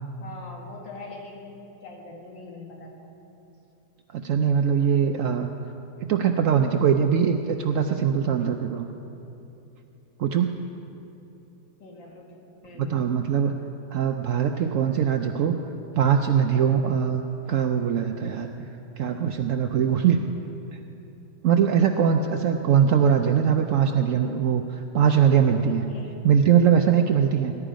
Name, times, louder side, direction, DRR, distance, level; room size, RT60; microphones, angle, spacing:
voice 1, 0.2-3.0 11.8-13.1 25.9-26.2, left 3 dB, 85° left, 0 dB, 2.6 m, -42 dB
voice 2, 4.1-5.5 6.1-8.8 10.2-10.5 12.8-13.5 13.9-15.6 16.0-18.5 19.0-20.2 20.7-20.8 21.4-25.8 26.2-27.6, right 8 dB, 75° right, 5 dB, 0.7 m, -21 dB
19.0 x 11.0 x 5.1 m, 2.9 s
omnidirectional pair, 2.0 m